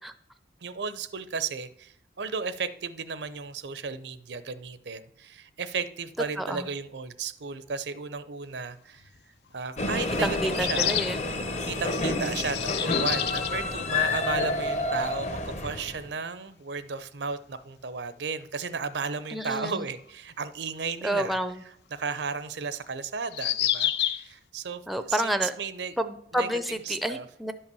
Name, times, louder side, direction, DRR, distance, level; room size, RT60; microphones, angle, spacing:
voice 1, 0.6-9.1 9.5-11.0 11.7-21.4 21.9-24.8 25.1-25.9 26.3-26.5 26.9-27.3, right 5 dB, 75° right, 14 dB, 0.7 m, -34 dB
voice 2, 6.4-6.7 10.2-11.2 19.3-19.9 21.0-21.6 24.9-25.5 26.0-27.5, equal, ahead, 10 dB, 0.5 m, -29 dB
sound 1, 9.0-9.1 10.5-11.2 11.9-13.6 14.8-14.9 15.1-15.2 17.6-17.7 20.8-20.9 23.3-24.3, left 12 dB, 65° left, 0.5 m, -29 dB
sound 2, 9.8-16.1, left 2 dB, 40° left, 1.0 m, -29 dB
11.0 x 5.6 x 6.9 m, 0.72 s
head